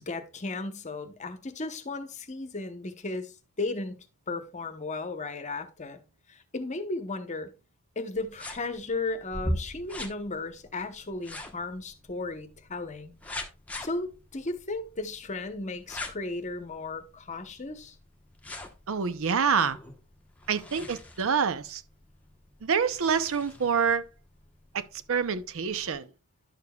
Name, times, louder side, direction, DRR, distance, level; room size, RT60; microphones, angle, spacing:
voice 1, 0.0-3.3 3.6-4.0 4.3-6.0 6.3-7.5 8.0-13.1 13.8-17.9, left 3 dB, 35° left, 0.9 m, -35 dB
sound 1, 8.2-25.9, left 1 dB, 5° left, 1.0 m, -42 dB
voice 2, 18.9-19.8 20.5-21.8 22.6-24.0 24.7-26.1, right 6 dB, 65° right, 0.6 m, -27 dB
11.0 x 6.7 x 2.3 m
head